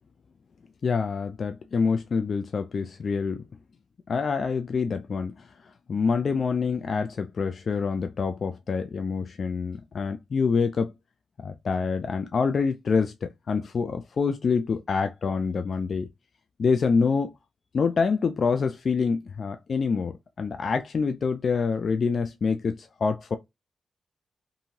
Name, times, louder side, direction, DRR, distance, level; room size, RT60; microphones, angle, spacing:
voice 1, 0.8-3.4 4.1-10.9 11.4-16.1 16.6-17.3 17.7-23.4, left 5 dB, 60° left, 0.3 m, -26 dB
2.8 x 2.6 x 2.6 m
supercardioid pair, 50°, 0 cm